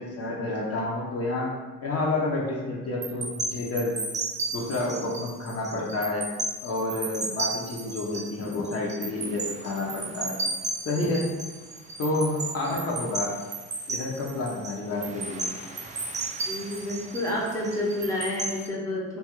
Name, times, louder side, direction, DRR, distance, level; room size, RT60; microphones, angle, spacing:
voice 1, 0.0-1.5 1.8-4.0 4.5-6.3 6.6-10.4 10.9-11.3 12.0-13.3 13.9-15.4, left 2 dB, 55° left, -3 dB, 0.7 m, -29 dB
sound 1, 3.0-18.7, right 3 dB, 25° right, 0.3 m, -34 dB
voice 2, 16.5-19.2, left 1 dB, 10° left, -5 dB, 0.7 m, -29 dB
2.8 x 2.3 x 2.9 m, 1.3 s
cardioid pair, 90°, 30 cm